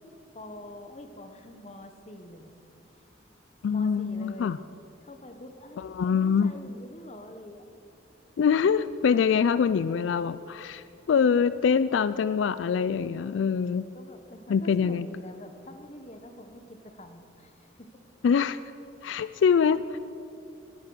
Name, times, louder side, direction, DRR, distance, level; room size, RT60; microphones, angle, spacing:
voice 1, 0.3-2.5 3.7-4.6 5.0-7.6 13.9-18.0, left 1 dB, 35° left, 6 dB, 1.1 m, -45 dB
voice 2, 3.6-4.6 5.8-6.6 8.4-13.8 14.5-15.1 18.2-18.6 19.0-20.0, left 6 dB, 85° left, 15 dB, 0.3 m, -24 dB
17.5 x 8.7 x 6.3 m, 2.7 s
head